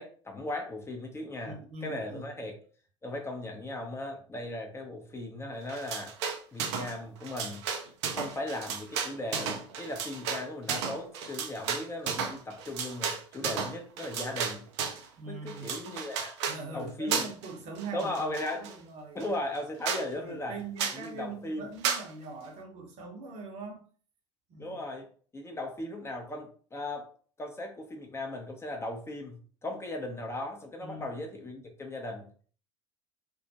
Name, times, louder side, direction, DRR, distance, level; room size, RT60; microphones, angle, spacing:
voice 1, 0.0-2.5 3.0-6.2 6.5-7.6 8.1-14.7 14.9-16.3 16.7-17.3 17.9-18.7 19.1-20.6 20.9-21.7 24.6-25.1 25.3-27.1 27.4-32.3, left 1 dB, 15° left, 0.5 m, -37 dB
voice 2, 1.4-2.3 15.2-15.7 16.5-19.3 20.1-23.8 24.5-24.8 30.8-31.2, right 3 dB, 45° right, 0.8 m, -42 dB
sound 1, 5.7-6.9 7.2-15.1 15.5-16.6 17.1-17.5 17.8-18.7 19.2-19.3 19.5-19.6 19.8-20.1 20.8-21.0 21.8-22.1, right 6 dB, 65° right, 0.4 m, -33 dB
2.2 x 2.1 x 2.7 m
figure-of-eight pair, 65°, 16 cm